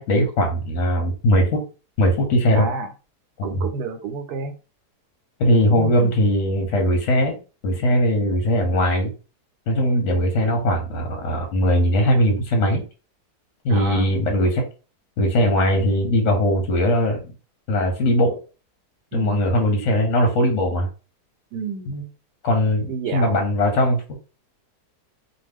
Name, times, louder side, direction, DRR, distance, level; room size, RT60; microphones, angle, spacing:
voice 1, 0.0-1.7 2.0-2.7 3.4-3.7 5.4-7.4 7.6-9.1 9.7-12.8 13.6-14.6 15.2-17.3 17.7-18.4 19.1-20.9 21.9-22.0 22.4-24.0, equal, 60° left, 3 dB, 0.9 m, -20 dB
voice 2, 2.5-2.9 3.4-4.5 5.7-6.2 13.7-14.1 19.1-19.4 21.5-21.9 22.9-23.4, right 5 dB, 75° right, 8 dB, 1.1 m, -30 dB
2.6 x 2.3 x 3.4 m, 0.34 s
omnidirectional pair, 1.8 m